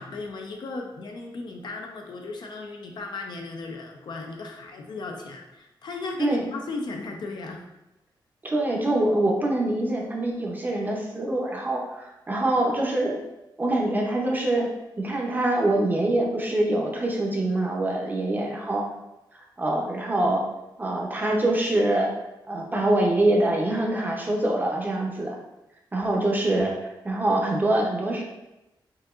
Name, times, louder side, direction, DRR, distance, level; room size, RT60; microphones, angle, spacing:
voice 1, 0.0-7.6, left 3 dB, 60° left, 2 dB, 0.5 m, -36 dB
voice 2, 6.2-6.5 8.4-13.2 13.6-14.7 15.0-18.8 19.3-20.4 20.8-22.1 22.5-25.3 25.9-26.7 27.0-28.2, right 1 dB, 20° right, -1 dB, 0.6 m, -24 dB
4.8 x 2.8 x 2.4 m, 0.94 s
wide cardioid pair, 145°, 8 cm